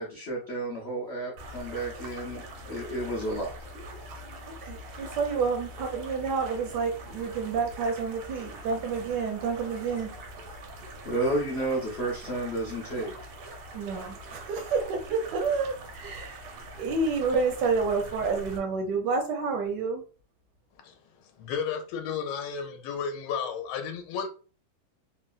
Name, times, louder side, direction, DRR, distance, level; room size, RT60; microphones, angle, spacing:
voice 1, 0.0-3.5 11.0-13.1, right 1 dB, 60° left, 0.6 m, -31 dB
sound 1, 1.4-18.6, right 1 dB, 90° right, 1.6 m, -43 dB
voice 2, 4.6-10.1 13.7-16.4 16.8-20.0, right 4 dB, 75° right, 1.0 m, -29 dB
voice 3, 21.4-24.3, left 6 dB, 80° left, 1.4 m, -33 dB
3.8 x 2.0 x 2.3 m
omnidirectional pair, 2.3 m